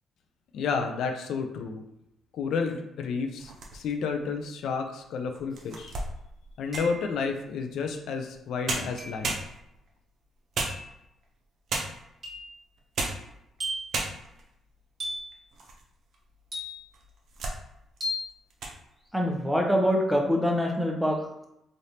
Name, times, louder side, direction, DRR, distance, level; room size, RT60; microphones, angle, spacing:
voice 1, 0.5-1.8 2.3-5.9 6.6-9.4, left 5 dB, 75° left, 5 dB, 0.4 m, -31 dB
sound 1, 3.4-4.1 4.7-4.8 5.3-7.0 8.3-8.4 8.7-9.9 10.5-11.2 11.7-12.2 12.8-13.3 13.6-13.7 13.9-14.5 15.0-15.8 16.1-16.2 16.9-17.6 18.0-18.2 18.5-18.8, right 3 dB, 65° right, 0.6 m, -34 dB
sound 2, 5.5-5.6 6.7-7.3 9.0-9.3 10.6-10.9 12.2-12.6 13.6-14.0 15.0-15.4 16.5-17.0 18.0-18.3, left 1 dB, 40° right, 1.1 m, -36 dB
voice 2, 19.1-21.2, equal, ahead, 0 dB, 0.7 m, -24 dB
3.3 x 2.5 x 2.8 m, 0.83 s
cardioid pair, 90°, 0 cm